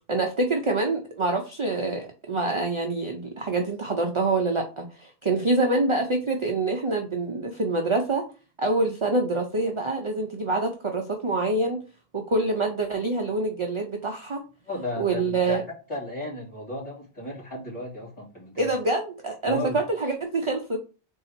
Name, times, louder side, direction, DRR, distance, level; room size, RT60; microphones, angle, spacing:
voice 1, 0.1-8.2 8.6-11.8 12.1-14.4 15.0-15.6 18.6-20.8, right 2 dB, 40° right, 2 dB, 0.5 m, -26 dB
voice 2, 14.7-15.6 15.9-18.7 19.4-19.8, left 2 dB, 30° left, -4 dB, 2.4 m, -34 dB
3.8 x 2.8 x 4.3 m, 0.35 s
omnidirectional pair, 1.0 m